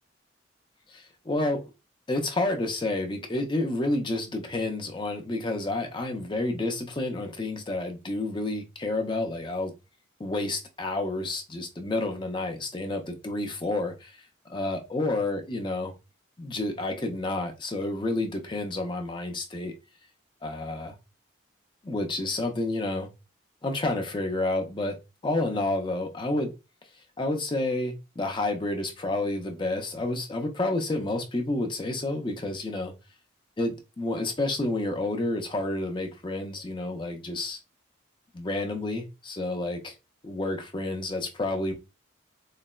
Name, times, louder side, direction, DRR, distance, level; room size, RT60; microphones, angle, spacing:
voice 1, 0.9-1.6 2.1-9.7 10.2-14.2 14.5-15.9 16.4-19.7 20.4-20.9 21.8-23.1 23.6-25.0 25.2-26.5 27.2-32.9 33.6-37.6 38.3-39.9 40.2-41.7, left 2 dB, 25° left, 0.4 m, -30 dB
4.0 x 2.0 x 2.2 m
head